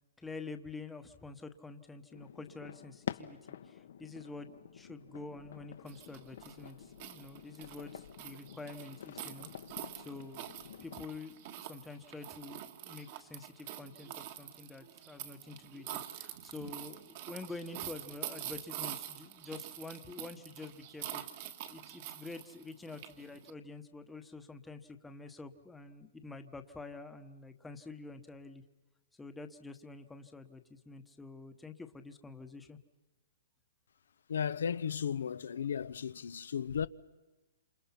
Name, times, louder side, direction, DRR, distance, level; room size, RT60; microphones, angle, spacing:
voice 1, 0.2-3.4 3.6-4.5 4.7-9.5 10.0-10.4 10.8-21.2 21.7-28.6 29.2-32.8, left 3 dB, 5° left, 1.1 m, -47 dB
sound 1, 2.1-11.0, left 9 dB, 65° left, 1.2 m, -48 dB
sound 2, 5.9-23.5, right 12 dB, 40° right, 1.6 m, -46 dB
voice 2, 34.3-36.9, left 7 dB, 80° left, 0.8 m, -35 dB
28.5 x 27.5 x 5.8 m
hypercardioid pair, 160°, 0 cm